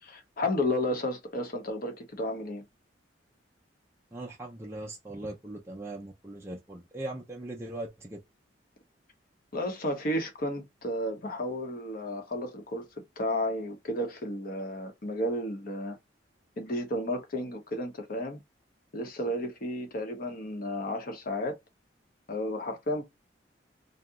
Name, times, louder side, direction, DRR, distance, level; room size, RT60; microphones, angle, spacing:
voice 1, 0.0-2.6 9.5-12.9 13.2-16.0 16.6-18.4 18.9-21.6 22.3-23.0, left 1 dB, 50° left, 0.8 m, -32 dB
voice 2, 4.1-8.2, right 1 dB, 15° right, 0.4 m, -40 dB
2.7 x 2.0 x 3.5 m
head